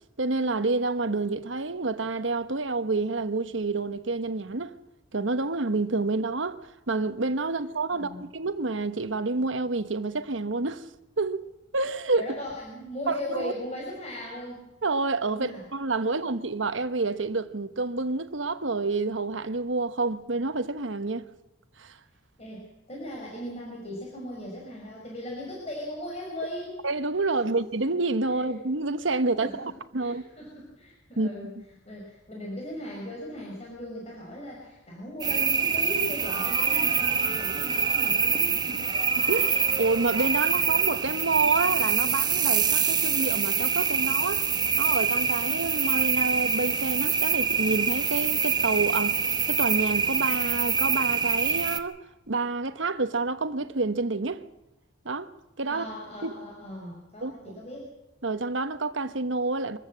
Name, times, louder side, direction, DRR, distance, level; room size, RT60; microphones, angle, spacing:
voice 1, 0.2-4.8 5.1-6.6 6.9-10.9 11.2-11.4 11.7-12.3 13.1-13.5 14.8-21.3 21.8-22.0 26.8-30.2 31.2-31.3 38.8-38.9 39.2-44.5 44.8-52.0 52.3-54.4 55.0-55.3 55.6-55.9 56.2-56.3 57.2-57.6 58.2-59.8, right 3 dB, 85° right, 1.2 m, -28 dB
voice 2, 7.9-8.3 12.2-14.7 15.3-15.6 22.4-26.8 27.4-27.6 28.3-28.5 29.4-29.6 30.0-31.5 31.9-38.8 55.7-57.9, left 1 dB, 35° left, 5.3 m, -38 dB
sound 1, 35.2-51.8, right 6 dB, 20° right, 1.0 m, -25 dB
24.5 x 14.5 x 7.5 m
head